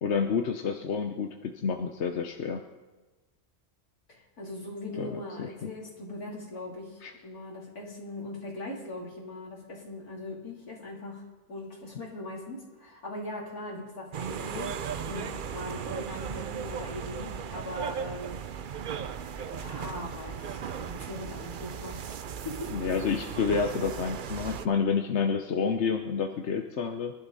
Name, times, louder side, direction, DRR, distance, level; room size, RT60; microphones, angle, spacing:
voice 1, 0.0-2.6 5.0-5.7 7.0-7.1 22.7-27.1, left 6 dB, 55° left, 4 dB, 1.1 m, -29 dB
voice 2, 4.1-18.4 19.5-22.1 22.4-22.7, left 1 dB, 90° left, -3 dB, 4.0 m, -40 dB
sound 1, 14.1-24.7, right 7 dB, 55° right, 0.5 m, -37 dB
23.0 x 12.0 x 4.2 m, 1.2 s
omnidirectional pair, 1.5 m